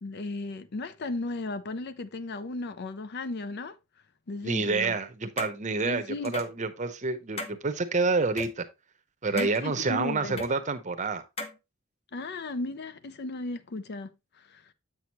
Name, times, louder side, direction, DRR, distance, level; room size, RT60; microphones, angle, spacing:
voice 1, 0.0-3.8 4.3-5.0 5.8-6.3 9.3-10.4 12.1-14.6, left 2 dB, 50° left, 0.5 m, -35 dB
voice 2, 4.4-8.6 9.2-11.2, right 3 dB, 35° right, 0.8 m, -28 dB
sound 1, 5.4-5.5 6.2-6.6 7.4-7.5 8.4-8.5 9.4-9.6 10.4-10.5 11.4-11.5, left 2 dB, 30° left, 0.9 m, -35 dB
7.8 x 6.2 x 2.9 m
head